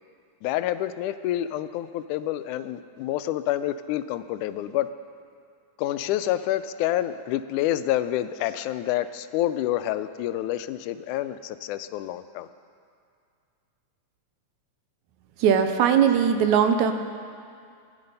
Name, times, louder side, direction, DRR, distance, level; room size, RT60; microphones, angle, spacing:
voice 1, 0.4-4.9 5.8-12.5, left 13 dB, 85° left, 12 dB, 2.0 m, -28 dB
voice 2, 15.4-16.9, right 8 dB, 80° right, 7 dB, 2.0 m, -20 dB
18.0 x 10.5 x 5.4 m, 2.3 s
omnidirectional pair, 3.5 m